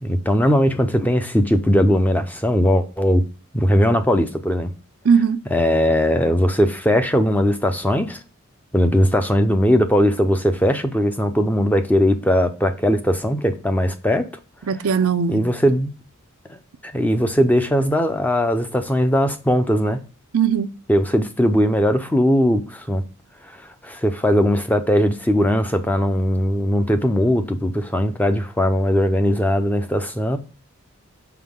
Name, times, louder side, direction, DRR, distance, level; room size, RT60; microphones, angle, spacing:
voice 1, 0.0-3.2 3.5-4.7 5.5-8.2 8.7-14.3 15.3-15.9 16.5-20.0 20.9-23.0 23.8-30.4, equal, 10° left, 0.7 m, -19 dB
voice 2, 5.0-5.4 14.7-15.4 20.3-20.7, right 6 dB, 85° right, 0.5 m, -18 dB
5.9 x 5.2 x 3.6 m
head